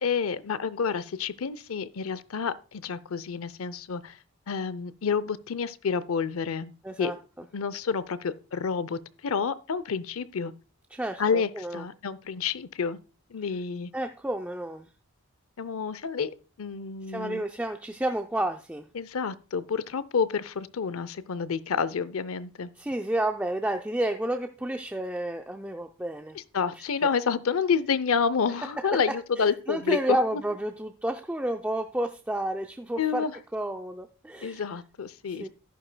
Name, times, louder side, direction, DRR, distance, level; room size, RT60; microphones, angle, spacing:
voice 1, 0.0-4.2 4.5-6.7 7.0-7.1 7.5-10.5 11.2-13.0 13.3-13.9 15.6-16.3 16.6-17.4 18.9-22.7 26.3-30.2 33.0-33.4 34.4-35.5, left 6 dB, 80° left, 0.6 m, -29 dB
voice 2, 6.8-7.2 10.9-11.9 13.9-14.9 17.1-18.9 22.8-26.4 26.7-26.8 28.8-29.0 29.4-33.2 33.5-34.6 35.3-35.5, right 1 dB, 5° right, 0.4 m, -31 dB
11.0 x 11.0 x 2.2 m
head